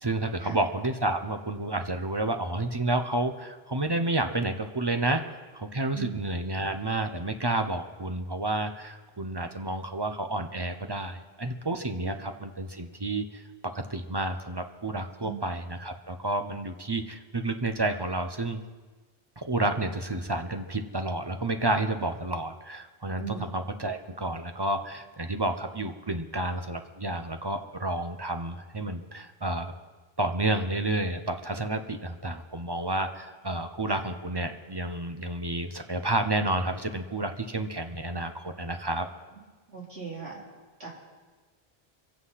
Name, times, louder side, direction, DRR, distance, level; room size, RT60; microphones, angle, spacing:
voice 1, 0.0-5.2 5.5-13.4 13.7-18.6 19.4-29.7 30.2-39.1, right 2 dB, 25° right, 7 dB, 0.7 m, -30 dB
voice 2, 23.2-23.5 33.9-34.0 39.7-40.4 40.8-40.9, right 6 dB, 75° right, -4 dB, 3.7 m, -38 dB
24.5 x 8.2 x 5.7 m, 1.3 s
omnidirectional pair, 1.1 m